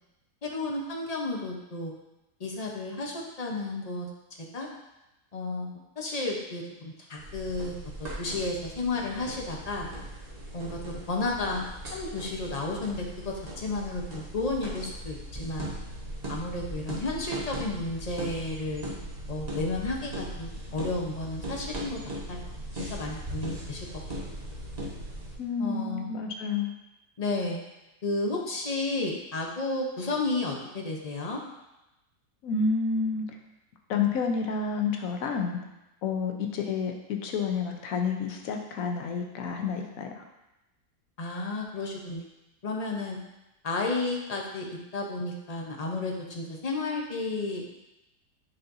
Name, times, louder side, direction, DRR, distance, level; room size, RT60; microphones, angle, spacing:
voice 1, 0.4-1.9 2.4-4.1 4.5-4.7 5.3-9.9 10.5-11.7 11.9-15.8 16.3-18.8 19.3-22.4 22.8-23.9 25.6-26.1 27.2-27.6 28.0-31.4 41.2-42.3 42.6-43.2 43.6-44.7 44.9-47.7, left 2 dB, 35° left, 0 dB, 0.7 m, -32 dB
sound 1, 7.2-25.4, right 1 dB, 30° right, 1.1 m, -39 dB
voice 2, 25.4-26.7 32.4-33.3 33.9-35.6 36.0-40.2, left 5 dB, 65° left, 3 dB, 1.1 m, -29 dB
9.4 x 4.3 x 2.6 m, 0.95 s
omnidirectional pair, 1.7 m